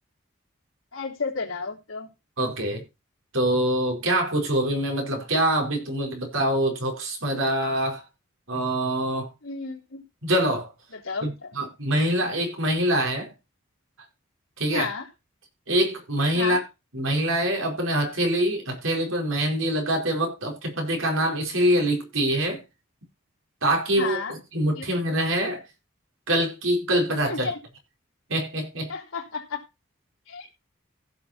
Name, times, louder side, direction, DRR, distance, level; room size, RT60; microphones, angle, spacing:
voice 1, 0.9-2.1 9.4-10.0 10.9-11.7 14.7-15.1 16.3-16.6 24.0-24.4 24.8-24.9 27.2-27.6 28.9-29.6 30.3-30.5, left 4 dB, 85° left, 3.6 m, -32 dB
voice 2, 2.4-2.8 3.3-8.0 8.5-9.3 10.2-10.7 11.2-11.3 11.5-13.3 14.6-14.9 15.7-16.6 16.9-22.6 23.6-25.6 26.3-27.5 28.3-28.9, right 1 dB, 80° right, 4.8 m, -24 dB
15.5 x 6.3 x 4.4 m
head